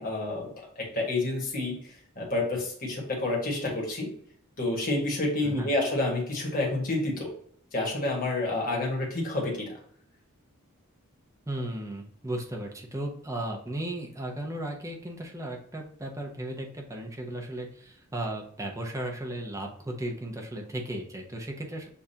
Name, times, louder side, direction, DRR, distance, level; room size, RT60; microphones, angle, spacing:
voice 1, 0.0-4.1 4.6-7.3 7.7-9.8, left 2 dB, 40° left, -2 dB, 1.4 m, -29 dB
voice 2, 11.5-21.9, right 1 dB, 15° right, 1 dB, 0.6 m, -35 dB
7.0 x 2.5 x 2.7 m, 0.64 s
head